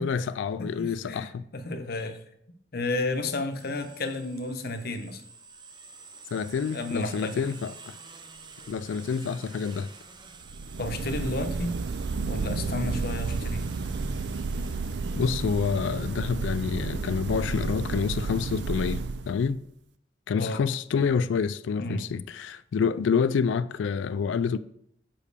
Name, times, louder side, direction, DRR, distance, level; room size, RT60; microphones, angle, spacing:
voice 1, 0.0-1.4 6.3-8.0 8.7-9.9 15.2-19.6 20.3-24.6, left 6 dB, 80° left, 0.3 m, -28 dB
voice 2, 0.6-2.2 2.7-5.2 6.7-7.4 10.8-11.8 12.3-13.7 20.4-20.6 21.8-22.1, left 2 dB, 55° left, 0.8 m, -32 dB
sound 1, 3.5-18.2, right 4 dB, 25° right, 0.6 m, -49 dB
sound 2, 10.4-19.6, right 4 dB, 65° right, 0.4 m, -31 dB
5.5 x 5.2 x 6.6 m
head